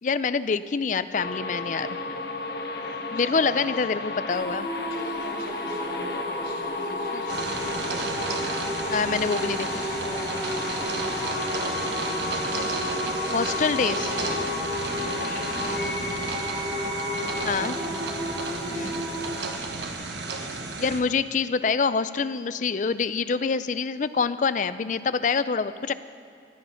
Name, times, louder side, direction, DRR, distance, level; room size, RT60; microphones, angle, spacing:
voice 1, 0.0-2.0 3.1-4.7 7.1-7.2 8.9-9.7 13.3-14.1 17.4-17.8 18.7-19.0 20.8-25.9, left 5 dB, 45° left, 14 dB, 0.4 m, -26 dB
sound 1, 1.1-17.5, left 3 dB, 60° left, 1.3 m, -33 dB
voice 2, 2.8-3.9 4.9-8.0 9.6-12.4 13.0-13.4 14.3-16.7 17.2-19.4, left 1 dB, 80° left, -6 dB, 4.1 m, -43 dB
sound 2, 4.3-19.5, equal, 20° right, 1.9 m, -34 dB
sound 3, 7.3-21.0, right 3 dB, 80° right, 1.3 m, -33 dB
15.5 x 10.5 x 5.8 m, 2.6 s
head